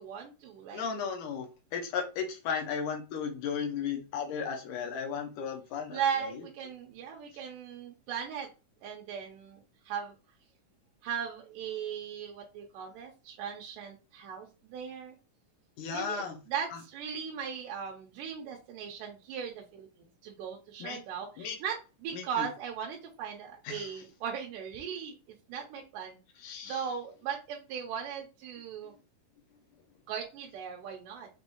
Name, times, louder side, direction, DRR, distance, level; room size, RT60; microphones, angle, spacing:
voice 1, 0.0-0.8 5.9-8.5 8.8-10.2 11.0-15.2 15.9-19.9 20.2-25.1 25.5-26.2 26.6-28.9 30.1-31.3, right 7 dB, 85° right, 0 dB, 2.3 m, -38 dB
voice 2, 0.7-6.3 15.8-16.4 20.8-21.0 21.4-21.6 22.1-22.5 23.7-23.9 26.4-26.8, left 6 dB, 75° left, 4 dB, 2.2 m, -35 dB
6.2 x 2.6 x 2.7 m, 0.31 s
omnidirectional pair, 3.8 m